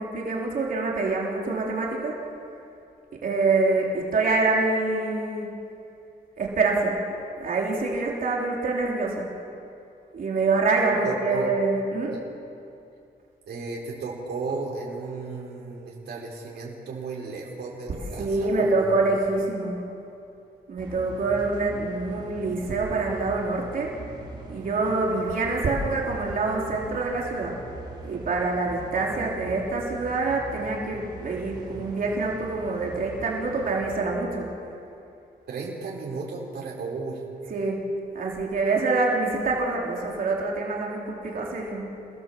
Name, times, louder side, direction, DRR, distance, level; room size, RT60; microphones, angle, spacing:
voice 1, 0.0-2.2 3.2-5.5 6.4-7.0 7.4-9.3 10.1-12.2 18.2-19.8 20.7-24.0 24.5-27.6 28.0-34.6 37.5-42.1, right 3 dB, 55° right, -2 dB, 3.6 m, -26 dB
voice 2, 11.0-11.5 12.1-12.2 13.5-19.1 35.5-37.2, right 4 dB, 80° right, -3 dB, 5.1 m, -34 dB
sound 1, 20.8-34.0, right 3 dB, 25° right, 3.6 m, -42 dB
28.5 x 17.5 x 7.6 m, 2.6 s
wide cardioid pair, 170°, 17 cm